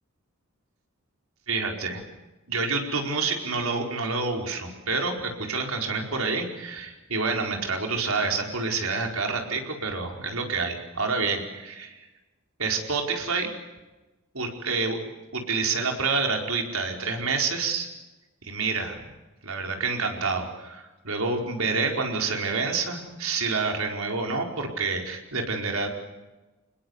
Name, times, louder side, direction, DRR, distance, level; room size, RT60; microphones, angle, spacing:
voice 1, 1.5-2.0 2.5-12.0 12.6-13.5 14.3-15.0 15.3-17.9 18.4-19.0 19.4-25.9, right 4 dB, 80° right, 2 dB, 4.8 m, -28 dB
27.0 x 21.0 x 8.1 m, 1.1 s
head